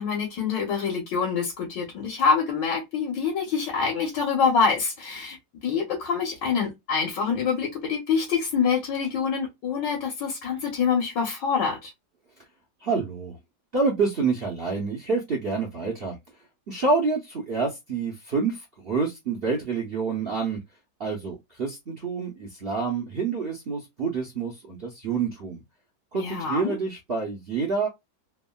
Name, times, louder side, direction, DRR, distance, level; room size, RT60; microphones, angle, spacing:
voice 1, 0.0-5.4 5.6-11.9 26.1-26.8, left 6 dB, 70° left, 1.6 m, -26 dB
voice 2, 12.8-13.4 13.7-16.2 16.7-20.6 21.0-25.6 26.1-27.9, right 4 dB, 60° right, 0.6 m, -27 dB
3.5 x 2.1 x 2.2 m
omnidirectional pair, 2.0 m